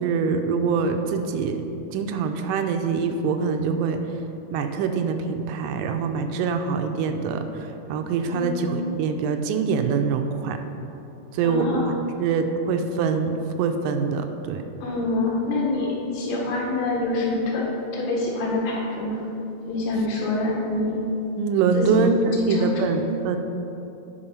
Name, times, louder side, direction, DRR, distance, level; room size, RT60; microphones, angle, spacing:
voice 1, 0.0-1.6 1.9-4.0 4.5-10.6 11.3-13.3 13.6-14.6 21.3-23.4, right 5 dB, 80° right, 6 dB, 2.0 m, -24 dB
voice 2, 11.4-11.8 14.8-17.7 17.9-19.2 19.7-21.0 21.7-22.0 22.3-22.7, left 2 dB, 70° left, -4 dB, 3.1 m, -25 dB
10.5 x 5.2 x 5.6 m, 2.9 s
omnidirectional pair, 4.1 m